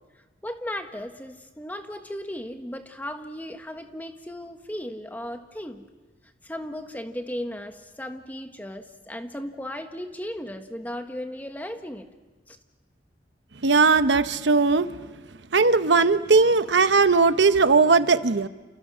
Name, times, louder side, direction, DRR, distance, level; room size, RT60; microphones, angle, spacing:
voice 1, 0.4-5.8 6.4-12.1 12.5-12.6, left 1 dB, 10° left, 6 dB, 1.5 m, -36 dB
voice 2, 13.6-14.9 15.5-18.5, right 4 dB, 85° right, 11 dB, 0.9 m, -18 dB
29.5 x 27.0 x 6.3 m, 1.2 s
head